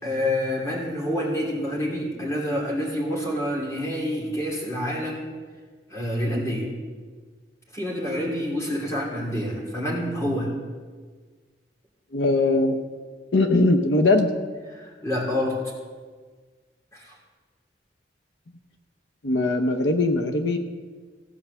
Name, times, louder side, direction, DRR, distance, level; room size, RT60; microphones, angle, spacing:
voice 1, 0.0-5.3 5.9-6.7 7.7-10.5 14.7-15.6 16.9-17.1, left 1 dB, 15° left, -3 dB, 2.9 m, -27 dB
voice 2, 12.1-12.8 13.3-14.3 19.2-20.6, left 2 dB, 85° left, 6 dB, 0.8 m, -20 dB
16.0 x 5.5 x 6.9 m, 1.5 s
head